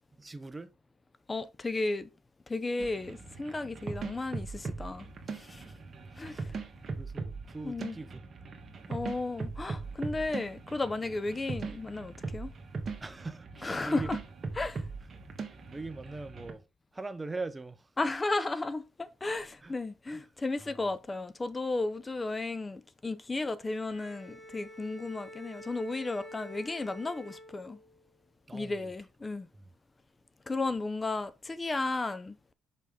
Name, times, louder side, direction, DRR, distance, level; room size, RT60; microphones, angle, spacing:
voice 1, 0.2-0.7 6.3-6.4 6.8-8.2 13.0-14.1 15.7-16.6 16.9-17.9 19.6-19.7 20.1-20.3 20.6-20.9 28.5-28.9 29.5-29.6, right 3 dB, 20° right, 0.6 m, -41 dB
voice 2, 1.3-2.1 2.5-5.1 5.3-5.6 6.2-6.5 7.6-8.0 8.9-12.5 13.6-14.2 14.6-14.8 18.0-27.8 28.5-29.5 30.5-32.4, left 2 dB, 25° left, 0.6 m, -34 dB
sound 1, 2.8-16.5, right 4 dB, 45° right, 1.4 m, -40 dB
Bowed string instrument, 23.7-28.1, equal, ahead, 2.5 m, -48 dB
5.4 x 5.1 x 3.7 m
supercardioid pair, 75°, 0 cm